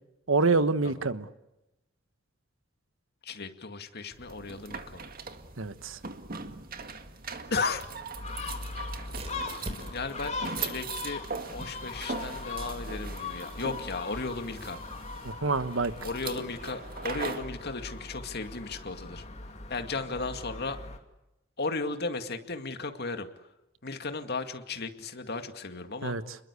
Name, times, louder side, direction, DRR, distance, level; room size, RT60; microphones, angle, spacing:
voice 1, 0.3-1.3 5.6-6.0 15.2-15.9 26.0-26.4, right 3 dB, 80° right, 12 dB, 1.3 m, -27 dB
voice 2, 3.2-5.0 7.5-7.9 9.4-11.2 11.5-14.8 16.0-19.2 19.7-20.8 21.6-23.3 23.8-26.2, left 3 dB, 55° left, 7 dB, 2.2 m, -35 dB
sound 1, 4.1-10.5, equal, 30° right, 4.0 m, -47 dB
sound 2, 4.3-17.5, right 5 dB, 50° right, 2.0 m, -40 dB
Gull seagull, 8.1-21.0, left 3 dB, 35° left, 2.8 m, -40 dB
29.5 x 21.5 x 8.4 m, 0.93 s
head